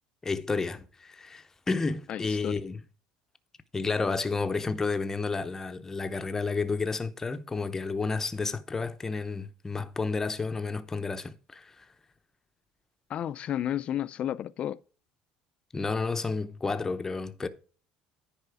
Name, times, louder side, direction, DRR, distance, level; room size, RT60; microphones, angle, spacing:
voice 1, 0.2-2.8 3.7-11.9 15.7-17.5, left 4 dB, 15° left, 0.7 m, -31 dB
voice 2, 2.1-2.6 13.1-14.8, left 11 dB, 45° left, 0.5 m, -32 dB
9.9 x 5.0 x 4.8 m
cardioid pair, 125°, 3 cm